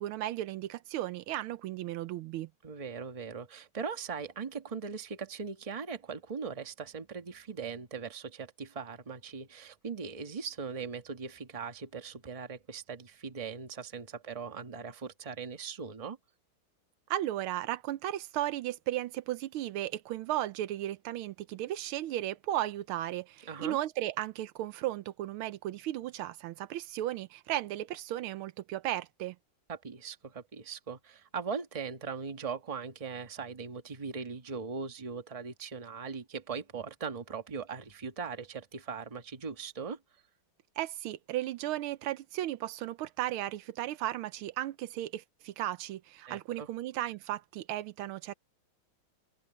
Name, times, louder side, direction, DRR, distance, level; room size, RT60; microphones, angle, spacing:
voice 1, 0.0-2.5 17.1-29.3 40.8-48.3, right 13 dB, 80° right, 1.5 m, -35 dB
voice 2, 2.6-16.2 23.4-23.8 29.7-40.0 46.3-46.7, right 5 dB, 20° right, 1.0 m, -40 dB
open air
omnidirectional pair, 2.3 m